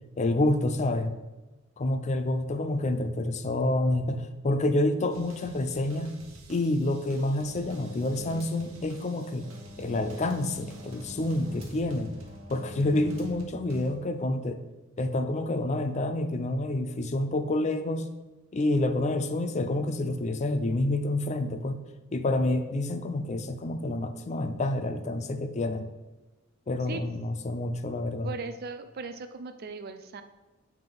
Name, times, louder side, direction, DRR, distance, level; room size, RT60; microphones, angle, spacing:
voice 1, 0.2-1.2 1.8-6.2 6.5-9.5 9.8-12.1 12.5-14.6 15.0-18.1 18.5-21.8 22.1-25.9 26.7-28.3, left 2 dB, 35° left, 9 dB, 0.4 m, -28 dB
sound 1, 5.1-14.0, right 1 dB, 75° right, 1.1 m, -50 dB
sound 2, 7.5-13.3, left 1 dB, 30° right, 1.9 m, -46 dB
voice 2, 28.2-30.2, right 4 dB, 50° right, 8 dB, 0.5 m, -38 dB
7.7 x 3.6 x 5.2 m, 1.1 s
head